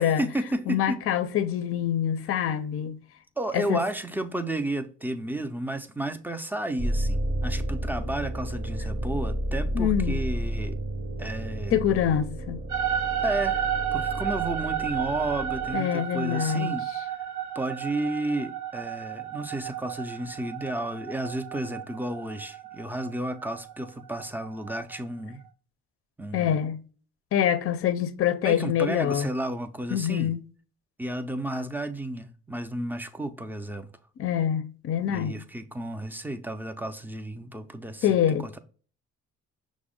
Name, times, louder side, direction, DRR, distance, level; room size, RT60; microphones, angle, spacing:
voice 1, 0.0-1.0 3.4-10.8 11.2-11.8 13.2-13.7 13.9-17.2 17.5-25.4 26.2-26.6 28.4-30.3 31.0-33.9 35.1-38.6, right 1 dB, 5° right, 0.4 m, -32 dB
voice 2, 0.7-3.0 3.5-3.9 9.7-10.2 11.7-12.6 15.7-16.7 26.3-26.8 27.3-29.3 29.9-30.4 34.2-35.4 38.0-38.5, left 9 dB, 50° left, 0.5 m, -25 dB
sound 1, 6.8-15.7, right 1 dB, 40° right, 0.7 m, -31 dB
sound 2, 12.7-25.0, right 9 dB, 80° right, 0.5 m, -33 dB
5.9 x 2.1 x 3.6 m
cardioid pair, 90°, 30 cm